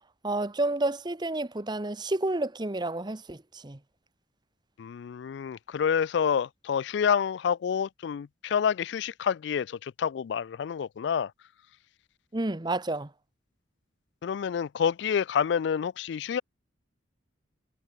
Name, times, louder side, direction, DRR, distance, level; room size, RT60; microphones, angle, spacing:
voice 1, 0.2-3.8 12.3-13.1, right 2 dB, 20° right, 0.9 m, -30 dB
voice 2, 4.8-11.3 14.2-16.4, left 7 dB, 60° left, 0.3 m, -28 dB
head